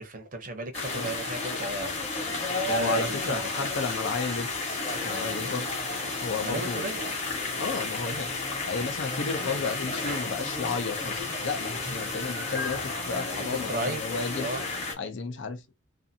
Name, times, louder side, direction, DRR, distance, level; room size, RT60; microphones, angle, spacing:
voice 1, 0.0-2.0 2.6-3.4 5.4-5.6 6.4-7.1 10.1-10.3 11.9-12.0 13.3-14.0 14.4-14.6, right 2 dB, 40° right, 0.7 m, -34 dB
sound 1, 0.7-14.9, left 3 dB, 30° left, 0.9 m, -32 dB
voice 2, 2.8-4.5 5.0-5.7 6.2-6.9 7.6-8.3 8.7-14.5 15.0-15.7, left 4 dB, 60° left, 0.5 m, -33 dB
2.5 x 2.4 x 2.6 m
head